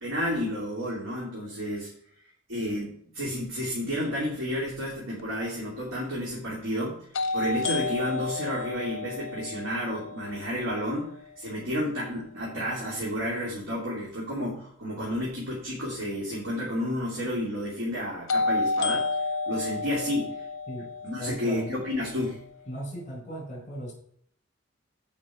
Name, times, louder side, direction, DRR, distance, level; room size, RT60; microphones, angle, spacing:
voice 1, 0.0-1.9 2.5-7.0 7.3-19.1 19.5-20.3 21.0-22.4, equal, 75° right, -5 dB, 2.8 m, -31 dB
sound 1, 5.2-5.3 7.1-11.1 18.3-22.3, left 3 dB, 65° left, 0.8 m, -31 dB
voice 2, 21.2-21.7 22.7-23.9, equal, 35° left, -2 dB, 4.5 m, -36 dB
14.5 x 5.3 x 4.8 m, 0.64 s
head